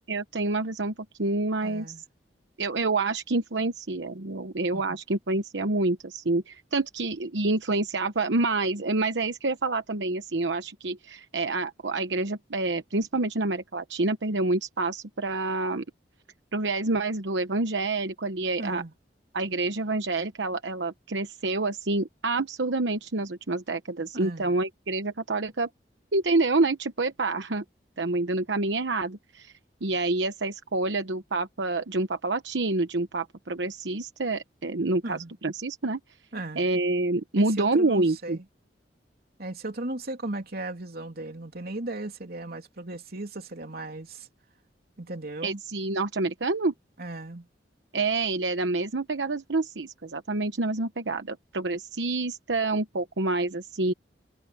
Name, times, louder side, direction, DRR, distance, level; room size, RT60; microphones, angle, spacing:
voice 1, 0.1-0.9 1.2-1.9 2.6-15.8 16.5-18.8 19.3-25.7 26.1-27.6 28.0-29.5 29.8-36.0 36.6-38.4 45.4-46.7 47.9-53.9, right 2 dB, 85° right, 1.0 m, -27 dB
voice 2, 1.6-2.0 4.7-5.0 18.6-18.9 24.1-24.6 35.0-35.3 36.3-36.7 37.4-38.4 39.4-44.3 45.0-45.6 47.0-47.5, right 2 dB, 60° right, 3.2 m, -36 dB
head